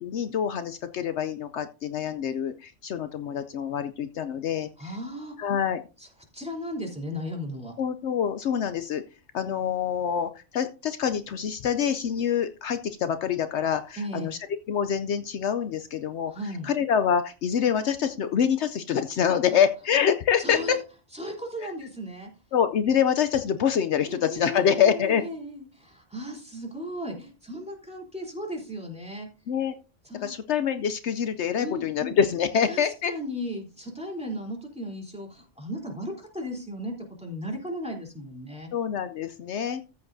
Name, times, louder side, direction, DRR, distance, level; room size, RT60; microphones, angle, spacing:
voice 1, 0.0-4.7 5.4-5.8 7.8-9.0 9.3-14.4 14.7-16.3 16.6-20.8 22.5-25.2 29.5-29.7 30.2-33.1 38.7-39.8, left 8 dB, 70° left, 10 dB, 0.9 m, -26 dB
voice 2, 4.8-5.4 6.0-6.1 6.3-7.7 14.0-14.3 16.3-16.7 20.4-20.8 21.1-22.3 24.1-29.3 30.0-30.3 31.6-32.1 32.7-38.7, equal, 5° right, 0 dB, 3.3 m, -36 dB
14.0 x 8.2 x 2.6 m, 0.33 s
omnidirectional pair, 1.2 m